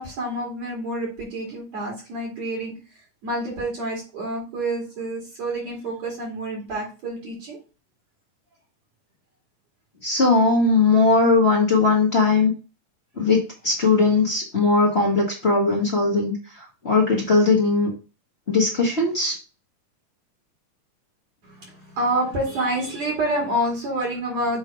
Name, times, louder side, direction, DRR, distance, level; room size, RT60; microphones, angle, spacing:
voice 1, 0.0-2.7 3.2-7.6 21.4-24.6, right 1 dB, 55° right, -3 dB, 3.5 m, -28 dB
voice 2, 10.0-12.5 13.2-17.9 18.5-19.3, left 3 dB, 35° left, -4 dB, 1.0 m, -19 dB
7.5 x 3.4 x 4.8 m, 0.31 s
omnidirectional pair, 3.7 m